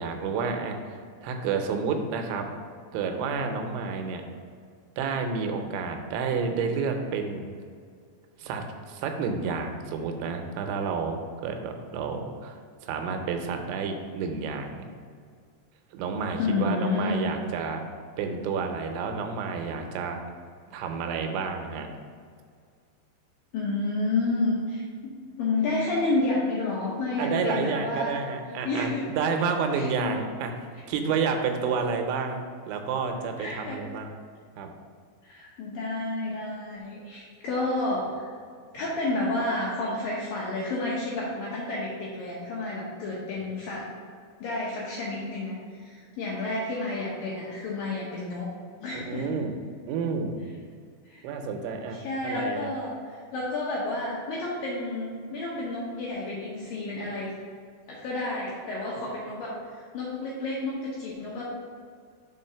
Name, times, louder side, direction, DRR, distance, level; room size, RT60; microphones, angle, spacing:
voice 1, 0.0-2.5 2.9-4.2 5.0-7.5 8.4-12.6 12.8-14.8 15.9-17.8 18.2-20.2 20.7-21.9 27.2-32.4 32.7-34.1 34.6-34.7 48.9-49.6 49.9-50.4 51.2-52.7, right 5 dB, 85° right, 4 dB, 3.1 m, -30 dB
voice 2, 16.4-17.3 23.5-25.1 25.4-28.1 28.6-29.4 29.7-29.9 33.4-33.8 35.2-38.3 38.7-43.9 44.4-48.5 48.8-49.4 51.0-51.3 51.9-57.3 57.9-61.4, left 2 dB, 75° left, -5 dB, 2.1 m, -30 dB
6.4 x 4.6 x 5.6 m, 2.1 s
omnidirectional pair, 5.2 m